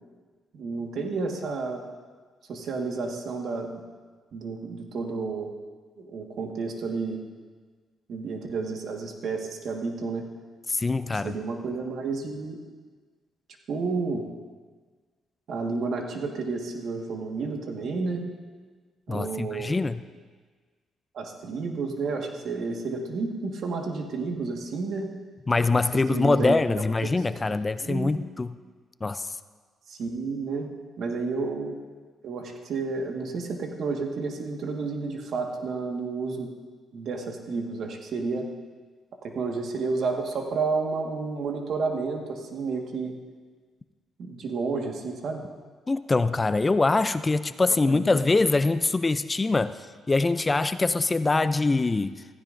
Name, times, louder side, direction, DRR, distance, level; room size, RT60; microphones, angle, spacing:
voice 1, 0.5-1.9 2.5-3.8 4.3-5.5 6.0-7.2 8.1-10.3 11.2-12.6 13.7-14.2 15.5-18.2 19.1-19.7 21.1-25.1 25.9-27.3 27.7-28.1 29.9-30.7 31.0-31.8 32.2-36.5 36.9-38.5 39.2-43.1 44.2-45.4 47.7-48.0 48.4-48.5, right 4 dB, 65° right, 2 dB, 1.5 m, -31 dB
voice 2, 10.7-11.3 19.1-20.0 25.5-28.5 29.0-29.3 45.9-49.8 50.1-52.1, left 3 dB, 25° left, 13 dB, 0.4 m, -24 dB
15.5 x 15.0 x 2.6 m, 1.5 s
cardioid pair, 90°, 0 cm